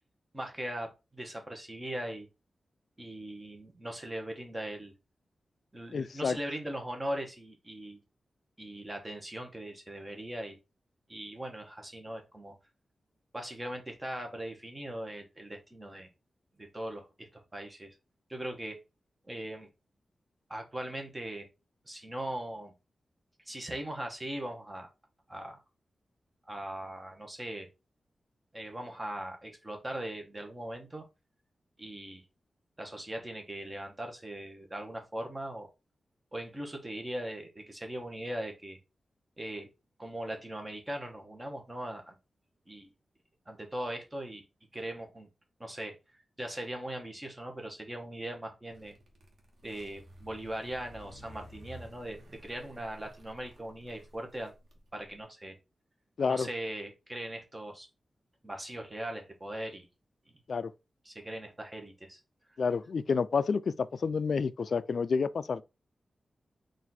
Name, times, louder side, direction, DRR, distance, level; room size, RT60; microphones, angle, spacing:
voice 1, 0.3-2.3 3.0-4.9 5.7-8.0 8.6-10.6 11.1-12.5 13.3-16.1 16.6-18.0 18.3-18.8 19.3-19.7 20.5-21.5 21.9-22.7 23.5-24.9 25.3-25.6 26.5-27.7 28.5-31.0 31.8-32.2 32.8-35.7 36.3-38.8 39.4-39.7 40.0-42.1 42.7-42.9 43.5-44.4 44.7-45.3 45.6-46.0 46.4-48.9 49.6-54.5 54.9-55.6 56.3-57.9 58.4-59.9 61.0-62.2, right 1 dB, 20° right, 1.1 m, -40 dB
voice 2, 5.9-6.4 56.2-56.5 60.5-60.7 62.6-65.6, left 5 dB, 60° left, 0.3 m, -29 dB
sound 1, 48.7-55.2, equal, 70° right, 1.1 m, -53 dB
4.2 x 2.5 x 4.1 m
wide cardioid pair, 115°, 0 cm